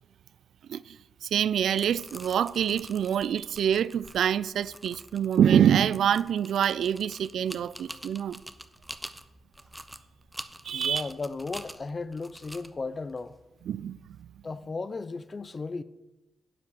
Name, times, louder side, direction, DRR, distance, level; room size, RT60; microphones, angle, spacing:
voice 1, 1.2-8.4 10.6-11.1 13.7-14.3, right 9 dB, 75° right, 0.4 m, -26 dB
sound 1, 1.4-14.2, right 1 dB, 5° right, 0.8 m, -46 dB
voice 2, 10.7-13.4 14.4-15.8, left 3 dB, 35° left, 0.7 m, -35 dB
10.0 x 8.2 x 7.0 m
cardioid pair, 75°, 0 cm